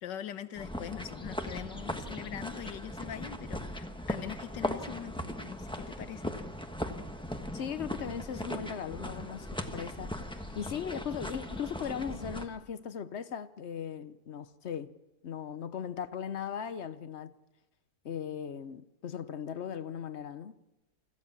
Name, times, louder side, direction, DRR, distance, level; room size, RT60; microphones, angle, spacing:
voice 1, 0.0-6.3, left 10 dB, 85° left, 1.7 m, -42 dB
sound 1, 0.6-12.5, left 1 dB, 5° left, 1.1 m, -39 dB
voice 2, 7.5-10.1 10.5-14.9 15.2-17.3 18.0-20.5, left 8 dB, 50° left, 0.9 m, -38 dB
25.5 x 15.0 x 7.2 m
omnidirectional pair, 1.9 m